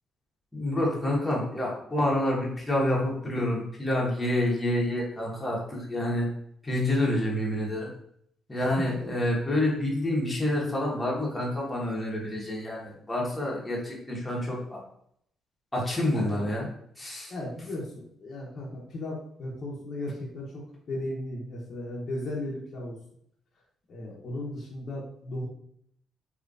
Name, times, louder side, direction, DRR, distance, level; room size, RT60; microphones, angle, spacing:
voice 1, 0.5-6.3 6.6-7.9 8.5-14.6 15.7-16.7 17.0-17.3, left 1 dB, 15° left, -4 dB, 1.3 m, -28 dB
voice 2, 8.5-8.8 9.1-9.2 16.1-16.5 17.3-20.6 20.9-23.0 23.9-25.5, left 1 dB, 50° left, -5 dB, 0.9 m, -36 dB
3.2 x 3.0 x 2.6 m, 0.69 s
cardioid pair, 90°, 0 cm